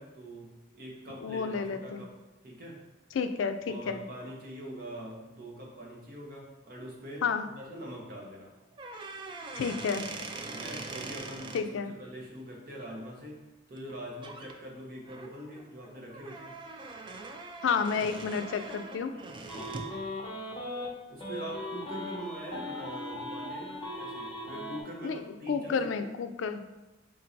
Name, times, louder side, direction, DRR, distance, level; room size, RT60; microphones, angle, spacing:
voice 1, 0.0-2.1 2.4-2.8 3.7-8.6 10.5-11.6 12.0-16.5 21.1-26.1, right 1 dB, 50° right, -2 dB, 1.0 m, -43 dB
voice 2, 1.2-2.0 3.1-4.0 7.2-7.5 9.6-10.1 11.5-11.9 17.6-19.1 25.0-26.8, left 5 dB, 80° left, 9 dB, 0.3 m, -31 dB
sound 1, 8.7-11.6 13.8-13.9 14.2-14.5 15.0-20.0, right 3 dB, 25° right, 0.3 m, -42 dB
sound 2, 19.5-20.9 21.2-24.8, left 1 dB, 30° left, 0.9 m, -38 dB
3.8 x 2.6 x 4.4 m, 1.1 s
head